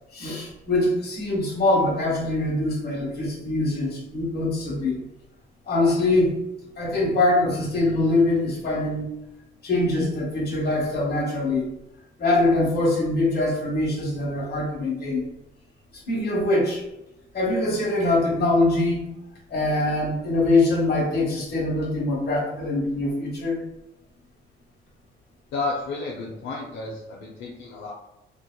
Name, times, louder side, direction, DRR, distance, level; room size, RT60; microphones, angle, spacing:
voice 1, 0.1-5.0 5.7-6.4 6.8-9.1 9.6-11.7 12.2-15.2 16.1-16.8 17.3-19.0 19.5-23.6, left 2 dB, 55° left, -3 dB, 1.2 m, -23 dB
voice 2, 25.5-27.9, left 3 dB, 85° left, -3 dB, 0.5 m, -31 dB
3.2 x 2.3 x 2.2 m, 0.89 s
cardioid pair, 90°, 20 cm